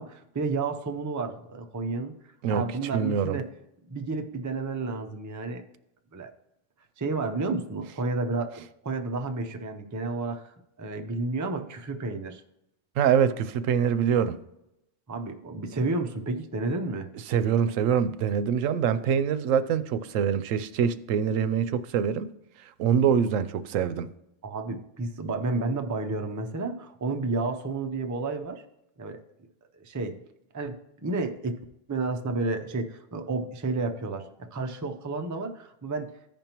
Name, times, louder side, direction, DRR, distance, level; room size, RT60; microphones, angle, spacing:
voice 1, 0.0-2.1 2.5-3.5 3.9-5.6 6.1-6.3 7.0-12.4 15.1-17.1 24.4-28.6 29.0-29.2 29.7-30.2 30.5-30.8 31.0-31.6 31.9-36.1, right 3 dB, 25° right, 5 dB, 0.4 m, -31 dB
voice 2, 2.9-3.4 13.0-14.4 17.3-22.3 22.8-24.1, right 8 dB, 90° right, 13 dB, 1.0 m, -24 dB
14.5 x 5.3 x 2.9 m, 0.87 s
omnidirectional pair, 1.3 m